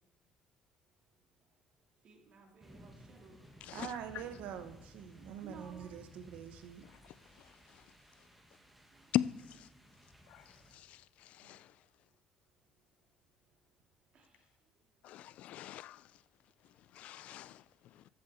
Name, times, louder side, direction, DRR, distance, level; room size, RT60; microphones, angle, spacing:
voice 1, 2.0-3.4 5.2-5.8 8.3-8.6 8.9-9.2 14.1-14.8, right 4 dB, 50° right, 2.5 m, -57 dB
sound 1, 2.6-10.8, equal, 5° right, 1.4 m, -58 dB
voice 2, 3.7-6.9, right 9 dB, 85° right, 0.9 m, -45 dB
voice 3, 15.0-16.0 16.9-17.6, left 12 dB, 65° left, 0.3 m, -37 dB
13.5 x 7.9 x 4.2 m
cardioid pair, 135°, 2 cm